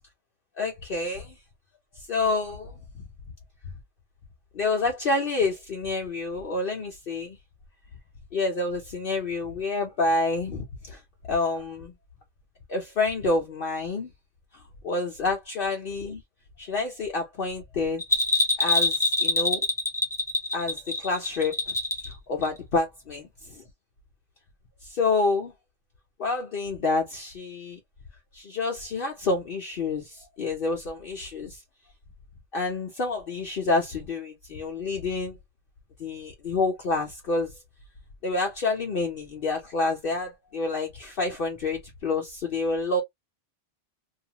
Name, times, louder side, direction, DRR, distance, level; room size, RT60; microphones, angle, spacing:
voice 1, 0.6-1.4 2.1-2.7 4.5-7.4 8.3-11.0 11.3-11.9 12.7-14.1 14.8-16.2 16.6-18.0 18.6-19.6 20.5-21.5 22.0-23.6 24.8-25.5 26.2-27.8 28.3-31.6 32.5-35.4 36.0-37.5 38.2-43.0, left 3 dB, 55° left, 0.8 m, -28 dB
Bell, 18.0-22.1 22.4-22.5, left 2 dB, 5° left, 0.5 m, -25 dB
2.6 x 2.4 x 2.8 m
omnidirectional pair, 1.3 m